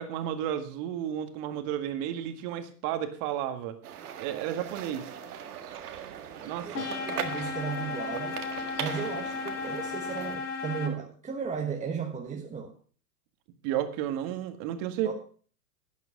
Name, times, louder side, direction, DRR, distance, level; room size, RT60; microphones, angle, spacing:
voice 1, 0.0-3.8 4.2-5.1 6.4-6.9 13.6-15.1, right 10 dB, 45° right, 1.8 m, -32 dB
sound 1, 3.8-10.4, right 8 dB, 70° right, 1.8 m, -40 dB
voice 2, 6.4-8.4 8.8-12.7 14.2-14.3 15.0-15.1, right 6 dB, 15° right, 1.3 m, -35 dB
sound 2, 6.7-10.9, left 4 dB, 75° left, 3.4 m, -35 dB
12.0 x 9.3 x 5.1 m
hypercardioid pair, 105°, 47 cm